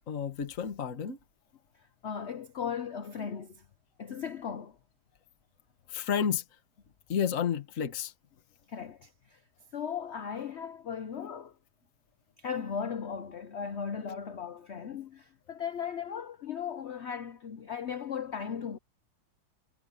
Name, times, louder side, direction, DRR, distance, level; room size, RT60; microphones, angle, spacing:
voice 1, 0.1-1.2 5.9-6.4 7.1-8.1, left 7 dB, 45° left, 1.8 m, -31 dB
voice 2, 2.0-3.6 4.0-4.8 8.7-9.4 9.7-11.5 12.4-18.8, left 7 dB, 85° left, 0.5 m, -37 dB
omnidirectional pair, 2.1 m